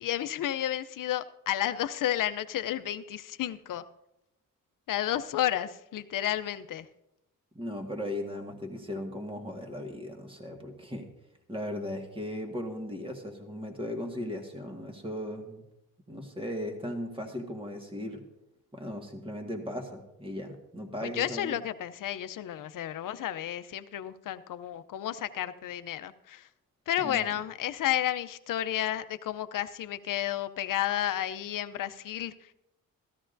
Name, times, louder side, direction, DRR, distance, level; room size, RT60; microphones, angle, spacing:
voice 1, 0.0-3.8 4.9-6.9 21.0-26.5 26.9-32.5, left 12 dB, 65° left, 12 dB, 0.6 m, -32 dB
voice 2, 7.5-11.1 11.5-15.6 16.1-18.2 18.7-21.6 27.0-27.2, left 1 dB, 15° right, 3 dB, 1.8 m, -37 dB
15.0 x 13.5 x 2.6 m, 0.88 s
cardioid pair, 95°, 35 cm